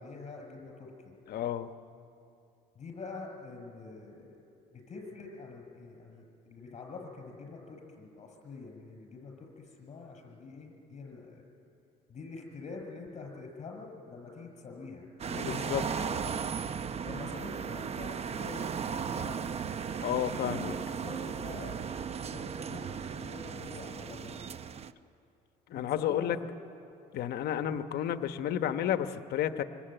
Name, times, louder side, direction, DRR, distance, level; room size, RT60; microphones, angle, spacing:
voice 1, 0.0-1.2 2.8-4.4 4.7-11.4 12.1-16.4 17.0-19.4 20.0-21.8 22.2-24.4 25.7-26.5, left 3 dB, 40° left, 2 dB, 7.1 m, -45 dB
voice 2, 1.3-1.7 15.4-15.8 20.0-20.7 25.7-26.4 27.1-29.6, left 10 dB, 70° left, 9 dB, 1.2 m, -31 dB
sound 1, 15.2-24.9, right 6 dB, 40° right, 0.8 m, -36 dB
25.0 x 24.0 x 9.1 m, 2.7 s
cardioid pair, 110°, 17 cm